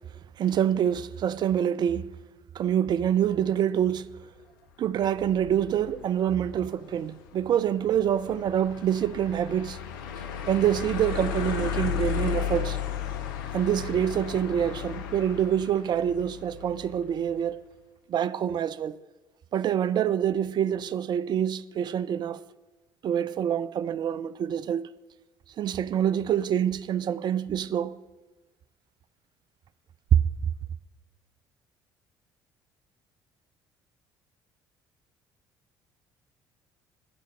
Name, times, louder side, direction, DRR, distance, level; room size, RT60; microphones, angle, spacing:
voice 1, 0.4-2.1 2.5-4.1 4.8-9.8 10.5-12.8 13.5-17.7 18.1-19.0 19.5-22.4 23.0-24.9 25.6-28.0, right 9 dB, 40° right, 0.4 m, -26 dB
sound 1, 5.0-17.2, left 9 dB, 70° left, 0.6 m, -35 dB
10.0 x 5.1 x 6.3 m
figure-of-eight pair, 50°, 11 cm